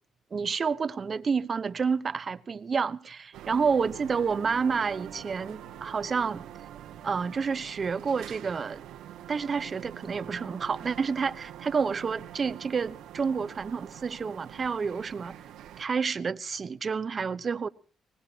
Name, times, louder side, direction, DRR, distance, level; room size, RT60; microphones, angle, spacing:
voice 1, 0.3-6.4 7.0-8.8 9.3-15.4 15.8-17.7, right 5 dB, 40° right, 1.0 m, -29 dB
sound 1, 3.3-15.8, right 11 dB, 85° right, 1.6 m, -45 dB
22.5 x 20.0 x 3.0 m
cardioid pair, 90°, 0 cm